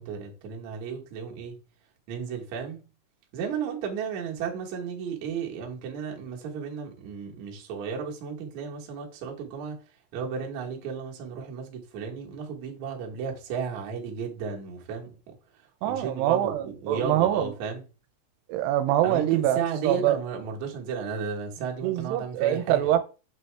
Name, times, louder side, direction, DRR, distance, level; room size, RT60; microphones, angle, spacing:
voice 1, 0.0-1.6 2.1-2.8 3.3-9.8 10.1-17.8 19.0-22.8, right 6 dB, 60° right, 2.1 m, -34 dB
voice 2, 15.8-17.5 18.5-20.2 21.8-23.0, right 12 dB, 85° right, 2.7 m, -24 dB
8.2 x 4.1 x 3.3 m
omnidirectional pair, 4.8 m